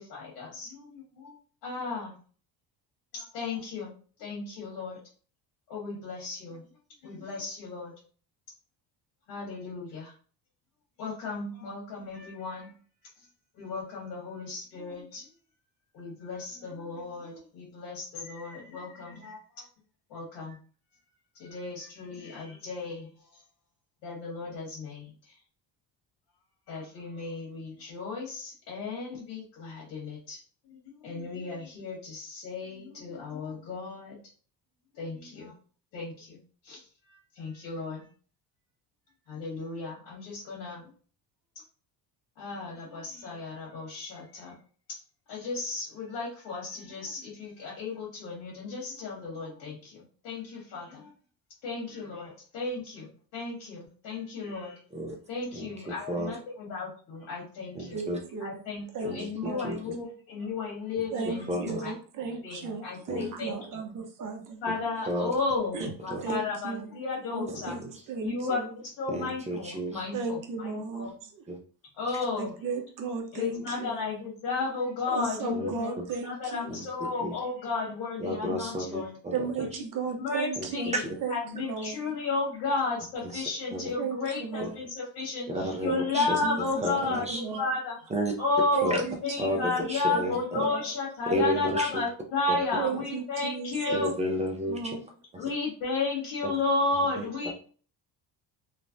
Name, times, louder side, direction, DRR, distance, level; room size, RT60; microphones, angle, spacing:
voice 1, 0.0-1.3 1.6-2.1 3.1-3.9 4.2-5.0 5.7-6.6 7.0-7.9 9.3-10.1 11.0-12.7 13.6-15.2 15.9-19.6 20.1-20.6 21.4-23.1 24.0-25.1 26.7-30.4 31.0-34.2 35.0-35.5 35.9-36.4 36.6-36.8 37.4-38.0 39.3-40.8 42.4-44.5 45.3-51.1 51.6-54.8 55.3-58.0 58.4-61.9 62.4-63.8 64.6-67.7 68.2-68.6 69.0-71.1 72.0-72.5 73.3-75.9 76.2-79.1 80.2-81.0 81.3-87.2 87.6-88.0 88.4-94.1 95.4-97.5, left 3 dB, 80° left, 1.5 m, -33 dB
voice 2, 55.5-56.3 57.7-58.2 59.0-59.9 61.5-61.8 63.1-63.3 65.1-65.3 65.8-66.2 67.6-67.9 69.1-70.0 71.5-71.6 75.5-75.7 76.0-76.1 76.7-76.9 77.2-77.3 78.2-79.3 80.6-80.7 80.9-81.0 83.3-83.4 83.7-83.9 84.6-84.7 85.5-86.4 86.8-87.4 88.1-88.3 88.8-89.0 89.4-90.6 91.3-92.0 92.5-92.6 93.9-94.8 95.3-95.5 97.2-97.5, equal, 20° right, 0.4 m, -32 dB
voice 3, 57.9-58.6 58.9-59.7 61.1-64.6 65.7-65.9 66.2-67.0 67.3-68.7 70.1-71.4 72.4-74.0 75.1-77.1 79.3-82.2 84.0-84.8 85.8-87.7 88.7-89.2 89.4-90.9 92.8-94.0 94.7-95.1, right 4 dB, 50° right, 0.7 m, -35 dB
3.1 x 2.1 x 2.5 m
cardioid pair, 130°, 41 cm